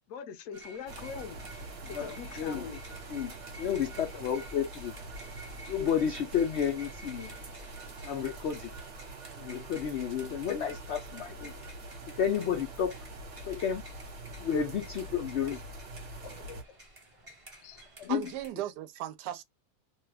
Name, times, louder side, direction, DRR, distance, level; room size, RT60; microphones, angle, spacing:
voice 1, 0.1-1.4 1.9-2.8 16.7-16.8 17.6-17.8, left 7 dB, 70° left, 1.0 m, -42 dB
sound 1, 0.5-18.5, right 2 dB, 30° right, 0.7 m, -52 dB
sound 2, 0.9-16.6, right 2 dB, 50° right, 1.2 m, -45 dB
voice 2, 1.9-2.7 3.1-4.9 5.7-7.3 8.0-8.7 9.4-11.5 12.1-12.9 13.5-13.8 14.4-15.6 16.5-16.6 18.0-18.2, left 8 dB, 90° left, 0.5 m, -31 dB
voice 3, 18.1-19.4, right 12 dB, 85° right, 1.2 m, -36 dB
2.8 x 2.3 x 3.2 m
omnidirectional pair, 1.7 m